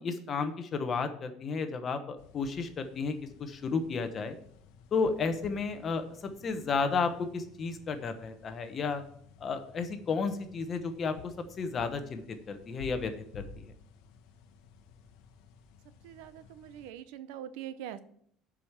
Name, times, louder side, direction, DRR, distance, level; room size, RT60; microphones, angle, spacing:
voice 1, 0.0-4.4 4.9-9.0 9.4-13.7, left 4 dB, 30° left, 8 dB, 1.0 m, -33 dB
sound 1, 2.2-16.9, left 5 dB, 80° left, 0.9 m, -54 dB
voice 2, 16.0-18.0, right 11 dB, 85° right, 14 dB, 0.6 m, -43 dB
7.7 x 5.1 x 7.2 m, 0.65 s
cardioid pair, 165°, 0 cm